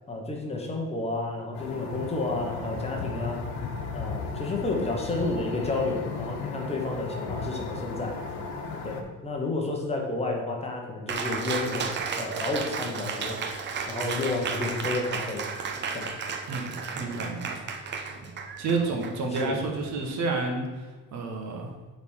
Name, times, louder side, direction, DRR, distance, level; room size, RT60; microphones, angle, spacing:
voice 1, 0.1-3.4 3.9-8.2 8.8-13.4 13.9-15.5 15.9-16.1 19.3-19.6, left 2 dB, 15° left, 0 dB, 1.1 m, -31 dB
sound 1, 1.5-9.0, left 4 dB, 85° left, 1.4 m, -35 dB
Cheering, 11.1-20.0, right 5 dB, 30° right, 0.6 m, -34 dB
voice 2, 16.5-17.6 18.6-20.8 21.1-21.7, right 3 dB, 45° right, 2 dB, 1.4 m, -30 dB
6.8 x 4.4 x 6.4 m, 1.3 s
cardioid pair, 165°, 39 cm